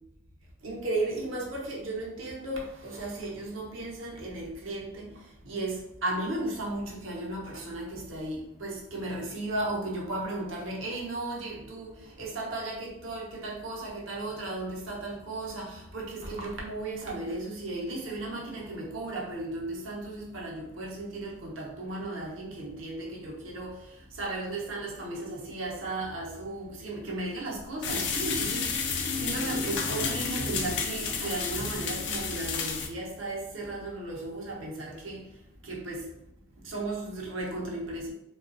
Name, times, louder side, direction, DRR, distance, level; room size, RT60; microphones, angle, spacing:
voice 1, 0.6-36.1 36.6-38.1, right 2 dB, 85° right, -3 dB, 0.8 m, -35 dB
sound 1, 27.8-32.9, left 5 dB, 60° left, 0.4 m, -31 dB
2.9 x 2.3 x 2.5 m, 0.82 s
head